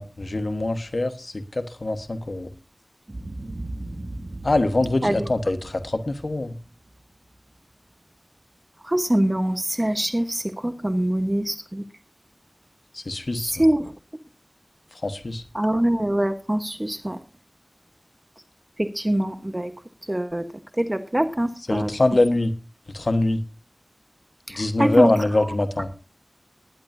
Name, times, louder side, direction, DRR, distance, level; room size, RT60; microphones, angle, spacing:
voice 1, 0.0-2.5 4.4-6.5 12.9-13.5 15.0-15.4 21.7-22.5 22.9-23.4 24.6-25.9, left 2 dB, 80° left, 8 dB, 1.2 m, -23 dB
Boom, 3.1-7.4, right 1 dB, 50° right, 1.2 m, -38 dB
voice 2, 8.9-11.8 13.5-13.9 15.5-17.2 18.8-19.7 20.1-20.4 20.8-21.9 24.5-25.1 25.4-25.5, right 1 dB, 30° right, 9 dB, 1.1 m, -23 dB
20.0 x 10.5 x 2.7 m, 0.32 s
wide cardioid pair, 50°, 0 cm